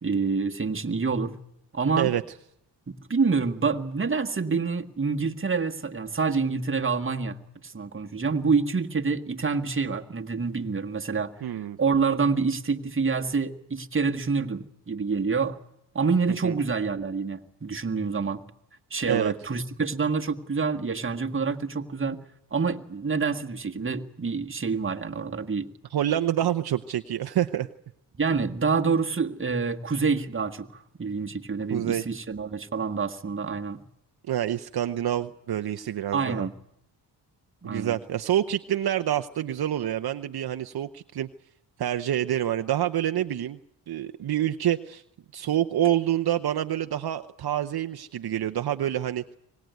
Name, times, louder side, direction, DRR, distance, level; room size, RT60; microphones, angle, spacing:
voice 1, 0.0-1.3 1.7-2.1 2.9-7.4 7.6-11.3 11.8-15.6 15.9-18.4 18.9-22.2 22.5-25.7 28.1-33.8 36.1-36.5 37.6-38.0, right 5 dB, 30° right, 4 dB, 1.7 m, -27 dB
voice 2, 11.4-11.8 16.3-16.5 19.1-19.3 25.9-27.7 31.7-32.0 34.3-36.5 37.6-41.3 41.8-43.6 43.9-45.0 45.3-49.4, right 11 dB, 60° right, 9 dB, 0.8 m, -27 dB
24.5 x 19.0 x 9.4 m, 0.79 s
cardioid pair, 75°, 43 cm